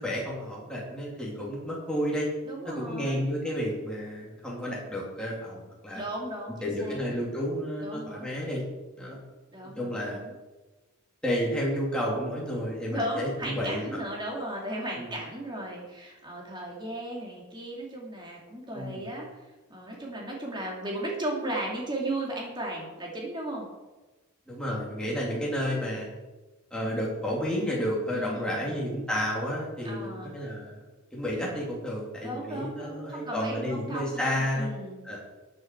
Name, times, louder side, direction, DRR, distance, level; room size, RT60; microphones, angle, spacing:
voice 1, 0.0-2.3 2.7-6.0 6.5-8.6 9.0-9.2 9.8-10.2 11.2-14.0 14.9-15.2 18.7-19.0 24.5-26.1 26.7-30.8 31.1-34.7 35.0-35.2, equal, 5° left, -5 dB, 2.9 m, -31 dB
voice 2, 2.4-3.2 5.9-7.0 7.8-8.3 9.5-10.3 12.9-19.4 19.7-23.7 28.1-28.9 29.8-30.4 32.2-35.0, right 1 dB, 20° right, -2 dB, 2.6 m, -36 dB
12.5 x 8.9 x 4.7 m, 1.2 s
head